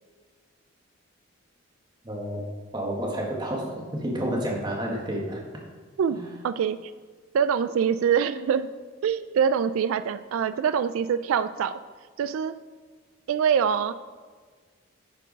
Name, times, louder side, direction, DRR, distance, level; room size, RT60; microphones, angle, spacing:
voice 1, 2.0-2.4 2.7-5.4 6.1-6.2, equal, 20° right, -2 dB, 1.5 m, -30 dB
voice 2, 6.4-6.9 7.3-8.7 9.0-11.8 12.2-12.5 13.3-13.9, right 7 dB, 80° right, 12 dB, 0.3 m, -24 dB
11.0 x 4.6 x 5.2 m, 1.5 s
head